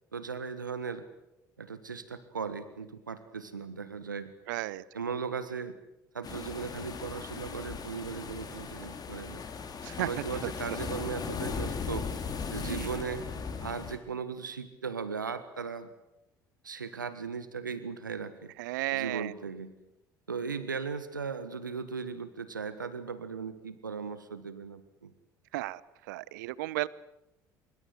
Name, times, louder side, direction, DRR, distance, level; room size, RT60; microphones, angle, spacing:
voice 1, 0.1-1.1 1.6-4.4 4.9-5.8 6.1-9.4 10.0-12.1 12.5-13.2 13.6-15.9 16.6-18.5 18.9-19.8 20.3-25.1, right 5 dB, 90° right, 12 dB, 1.5 m, -37 dB
voice 2, 4.5-4.8 9.8-10.1 12.6-12.9 18.6-19.3 25.5-25.8 26.1-26.9, right 18 dB, 70° right, 21 dB, 0.9 m, -33 dB
sound 1, 6.2-14.0, left 5 dB, 40° left, 4.0 m, -38 dB
25.0 x 23.0 x 7.9 m, 0.88 s
figure-of-eight pair, 60°, 10 cm